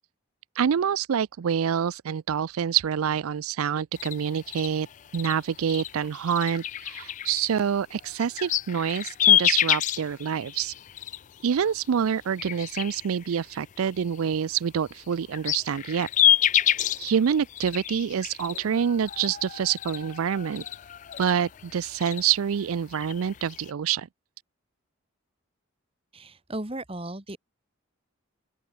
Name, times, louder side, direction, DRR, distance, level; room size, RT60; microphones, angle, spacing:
voice 1, 0.6-4.9 5.1-10.7 11.4-16.1 17.0-20.6 21.2-24.1, right 8 dB, 85° right, 0.4 m, -26 dB
sound 1, 4.0-11.9 12.2-14.3 14.9-23.7, left 11 dB, 35° left, 0.3 m, -28 dB
voice 2, 26.1-27.4, right 1 dB, 25° right, 1.8 m, -35 dB
open air
head